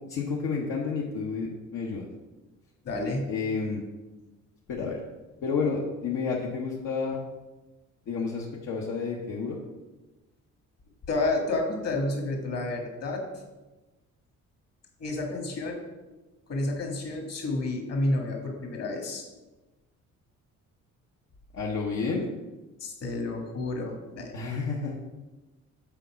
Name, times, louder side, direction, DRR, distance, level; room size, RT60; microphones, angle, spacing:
voice 1, 0.1-2.0 3.3-3.8 4.7-5.0 5.4-7.2 8.1-9.6 21.5-22.3 24.3-24.9, left 5 dB, 75° left, -3 dB, 1.1 m, -30 dB
voice 2, 2.8-3.3 11.1-13.2 15.0-15.8 16.5-19.3 22.8-24.3, left 2 dB, 55° left, 2 dB, 1.8 m, -30 dB
7.0 x 4.1 x 5.7 m, 1.1 s
cardioid pair, 90°, 30 cm